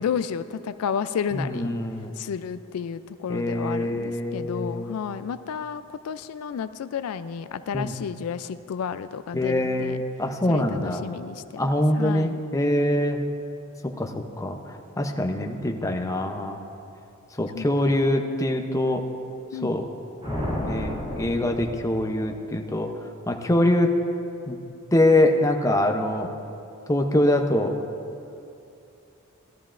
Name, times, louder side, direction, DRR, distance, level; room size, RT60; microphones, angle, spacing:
voice 1, 0.0-1.7 2.2-10.0 10.5-11.4 11.9-12.4 17.5-17.7 19.5-19.7, left 7 dB, 80° left, 12 dB, 0.3 m, -31 dB
voice 2, 1.3-2.1 3.3-5.0 7.7-7.9 9.3-11.0 11.6-13.2 14.0-14.1 14.4-16.6 17.4-19.0 19.6-19.9 20.7-22.9 23.3-23.9 24.5-24.6 24.9-26.3 26.9-27.7, left 1 dB, 15° left, 3 dB, 0.6 m, -24 dB
sound 1, 20.2-22.5, equal, 25° right, 2.9 m, -32 dB
17.0 x 12.5 x 2.5 m, 2.7 s
head